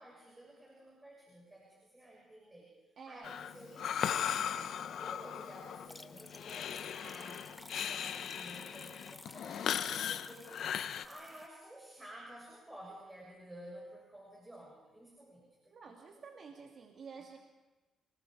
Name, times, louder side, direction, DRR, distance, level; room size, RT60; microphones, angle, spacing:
voice 1, 0.0-10.6 11.0-16.2, right 1 dB, 15° right, -2 dB, 6.9 m, -53 dB
voice 2, 3.0-3.4 15.7-17.4, right 5 dB, 55° right, 1 dB, 2.6 m, -50 dB
Breathing, 3.2-11.1, left 9 dB, 70° left, 0.8 m, -38 dB
sound 1, 5.6-11.5, left 2 dB, 15° left, 1.2 m, -54 dB
29.0 x 20.0 x 5.0 m, 1.2 s
cardioid pair, 90°, 0 cm